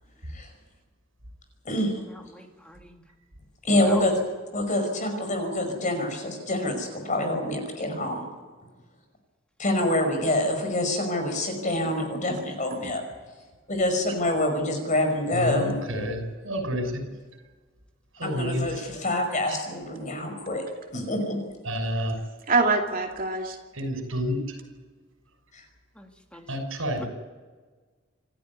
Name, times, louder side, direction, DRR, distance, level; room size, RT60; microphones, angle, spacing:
voice 1, 2.3-3.0 3.8-4.0 26.0-26.5 27.0-27.1, equal, 5° left, 2 dB, 2.5 m, -40 dB
voice 2, 3.6-4.1 4.5-8.2 9.6-13.0 13.7-15.7 18.2-20.6 20.9-21.4, left 1 dB, 40° left, 5 dB, 5.5 m, -26 dB
voice 3, 15.3-17.0 18.2-18.8 19.5-19.6 21.6-22.1 23.7-24.4 26.5-27.1, equal, 90° right, 5 dB, 6.2 m, -29 dB
voice 4, 22.5-23.6, right 3 dB, 45° right, 2 dB, 2.8 m, -24 dB
27.5 x 14.0 x 9.6 m, 1.4 s
head